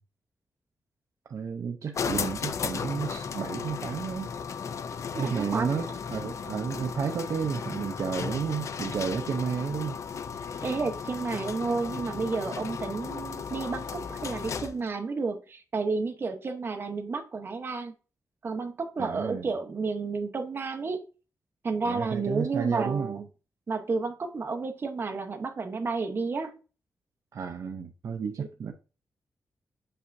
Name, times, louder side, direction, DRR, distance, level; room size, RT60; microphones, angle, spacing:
voice 1, 1.3-4.3 5.1-10.0 19.0-19.5 21.8-23.2 27.3-28.7, right 6 dB, 55° right, 0.5 m, -32 dB
sound 1, 1.9-14.9, left 6 dB, 55° left, 0.4 m, -35 dB
voice 2, 5.1-5.8 10.6-17.9 18.4-21.0 21.6-23.2 23.7-26.5 28.4-28.5, right 4 dB, 35° right, 0.9 m, -31 dB
6.7 x 5.5 x 2.6 m
wide cardioid pair, 180°, 6 cm